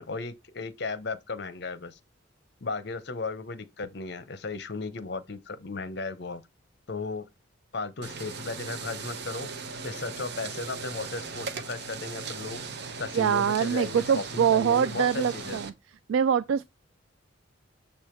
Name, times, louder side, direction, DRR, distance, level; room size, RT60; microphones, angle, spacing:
voice 1, 0.0-2.0 2.6-6.4 6.9-7.3 7.7-9.5 9.8-12.6 13.0-15.6, left 3 dB, 60° left, 0.8 m, -35 dB
sound 1, 8.0-15.7, right 4 dB, 55° right, 0.8 m, -38 dB
voice 2, 13.1-15.7 16.1-16.6, right 7 dB, 85° right, 0.3 m, -24 dB
7.1 x 3.4 x 4.4 m
head